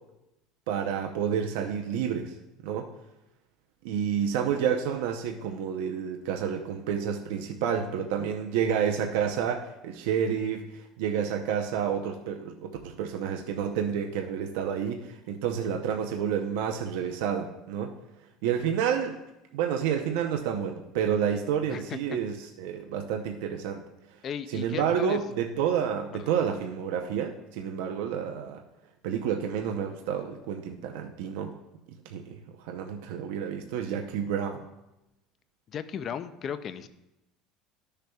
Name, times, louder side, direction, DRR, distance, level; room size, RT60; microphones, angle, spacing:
voice 1, 0.7-2.3 2.6-2.9 3.8-10.7 11.0-17.9 18.4-19.2 19.5-23.8 24.5-28.6 29.0-31.5 32.0-34.6, right 8 dB, 80° right, 3 dB, 0.7 m, -29 dB
voice 2, 24.2-25.2 26.2-26.3 35.7-36.9, left 8 dB, 30° left, 12 dB, 0.4 m, -36 dB
13.5 x 6.6 x 2.3 m, 0.91 s
cardioid pair, 175°, 0 cm